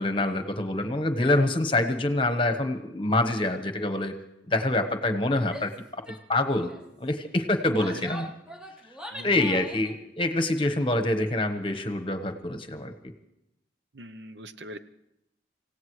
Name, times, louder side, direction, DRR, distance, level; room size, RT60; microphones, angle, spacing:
voice 1, 0.0-4.1 4.5-6.0 6.3-6.7 7.0-8.3 9.2-13.1, left 2 dB, 30° left, 7 dB, 1.1 m, -26 dB
Female speech woman speaking / Yell, 5.4-5.8 6.1-6.2 6.5-6.8 7.5-9.9, equal, 5° right, 0.8 m, -42 dB
voice 2, 9.1-9.5 13.9-14.8, right 1 dB, 70° right, 11 dB, 0.7 m, -41 dB
26.5 x 16.5 x 3.2 m, 0.85 s
head